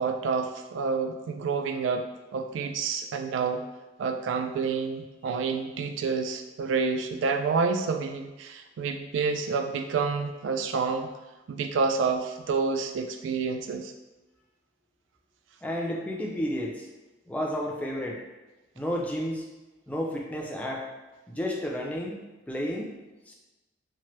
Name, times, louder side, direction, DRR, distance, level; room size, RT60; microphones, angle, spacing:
voice 1, 0.0-3.6 4.0-11.1 11.5-13.9, right 5 dB, 80° right, 6 dB, 0.3 m, -28 dB
voice 2, 15.6-16.9 17.3-18.2 18.8-19.4 19.9-20.9 21.3-22.2 22.5-23.0 23.3-23.4, equal, 10° left, -1 dB, 0.4 m, -31 dB
2.9 x 2.1 x 3.0 m, 1.1 s
head